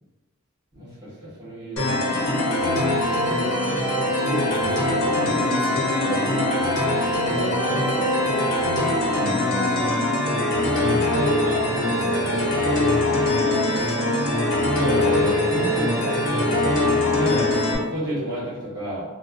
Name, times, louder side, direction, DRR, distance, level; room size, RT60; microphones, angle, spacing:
voice 1, 0.7-2.4 14.7-17.5 17.8-19.0, equal, 20° right, -11 dB, 1.2 m, -31 dB
sound 1, 1.8-17.8, left 1 dB, 70° left, 0.7 m, -22 dB
voice 2, 4.0-4.8 5.2-6.5 7.3-9.8 10.6-11.1 11.4-12.8 13.6-14.0, right 1 dB, 80° right, -2 dB, 0.6 m, -33 dB
2.5 x 2.1 x 2.5 m, 1.2 s
head